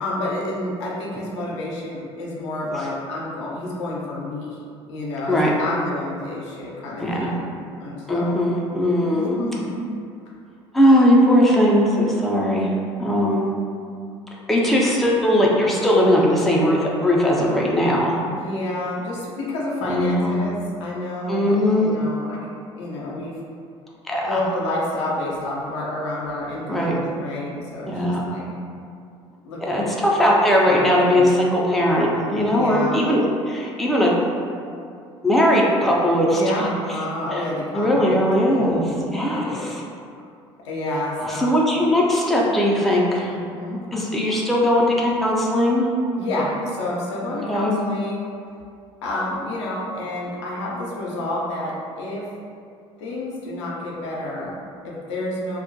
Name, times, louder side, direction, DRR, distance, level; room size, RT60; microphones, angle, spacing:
voice 1, 0.0-4.6 4.9-7.5 7.8-8.5 9.1-9.8 18.3-22.5 22.8-23.4 24.3-28.4 29.4-29.9 30.6-31.2 32.5-33.1 36.3-39.7 40.1-40.2 40.6-41.5 43.3-43.8 46.1-48.3 49.0-52.3 53.0-55.6, left 1 dB, 70° left, -4 dB, 0.5 m, -29 dB
voice 2, 7.0-7.3 8.1-9.4 10.7-13.4 14.5-18.2 19.8-20.4 21.3-21.9 24.0-24.3 26.7-27.0 27.9-28.3 29.7-33.2 33.5-34.1 35.2-36.7 37.3-37.4 37.7-39.8 41.2-43.3 43.9-45.9 47.5-47.8, equal, ahead, -4 dB, 0.4 m, -19 dB
2.2 x 2.0 x 2.7 m, 2.4 s
figure-of-eight pair, 60°, 15 cm